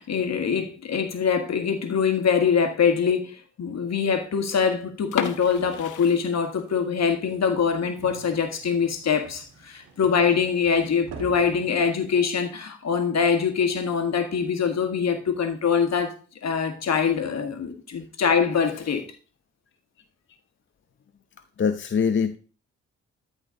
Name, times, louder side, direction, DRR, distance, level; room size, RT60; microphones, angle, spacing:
voice 1, 0.0-16.1 16.4-19.1, left 6 dB, 60° left, 1.7 m, -24 dB
sound 1, 5.0-6.9 7.3-7.4 7.9-8.1 8.5-8.6 8.9-9.0 9.7-10.0, left 9 dB, 80° left, 1.0 m, -32 dB
sound 2, 7.1-12.1, right 5 dB, 90° right, 1.9 m, -45 dB
voice 2, 18.6-18.9 21.6-22.4, left 6 dB, 40° left, 0.7 m, -24 dB
13.5 x 4.5 x 3.8 m
supercardioid pair, 55°, 30 cm